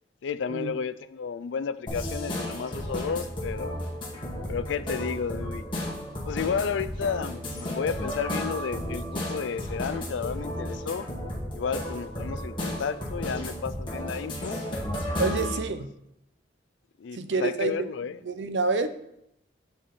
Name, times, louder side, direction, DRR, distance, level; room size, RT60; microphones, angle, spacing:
voice 1, 0.2-3.8 4.4-5.7 6.2-11.1 11.5-14.6 15.1-15.6 17.0-18.2, left 6 dB, 85° left, 14 dB, 0.4 m, -32 dB
sound 1, 1.9-15.6, equal, 30° left, 1.9 m, -33 dB
sound 2, 6.4-10.8, equal, 30° right, 2.8 m, -50 dB
voice 2, 15.2-15.9 17.1-17.7 18.2-18.9, right 3 dB, 75° right, 9 dB, 0.7 m, -27 dB
7.4 x 6.4 x 4.0 m, 0.80 s
head